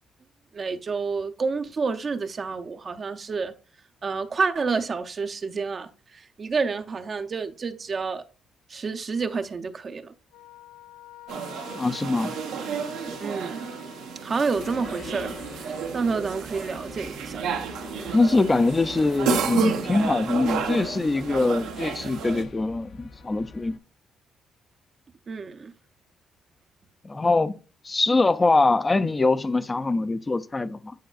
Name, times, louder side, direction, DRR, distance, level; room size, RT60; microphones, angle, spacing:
voice 1, 0.5-3.5 4.0-8.2 8.7-10.1 13.2-13.7 14.2-15.4 15.9-17.5 25.3-25.7, right 4 dB, 40° right, 0.5 m, -29 dB
sound 1, 10.3-14.7, left 13 dB, 90° left, 0.4 m, -46 dB
sound 2, 11.3-22.4, right 7 dB, 85° right, 0.9 m, -31 dB
voice 2, 11.8-12.4 18.1-23.8 27.0-27.5 27.8-30.9, left 3 dB, 25° left, 0.4 m, -23 dB
sound 3, 14.5-23.8, left 4 dB, 60° left, 0.7 m, -43 dB
9.2 x 4.8 x 2.4 m
cardioid pair, 90°, 0 cm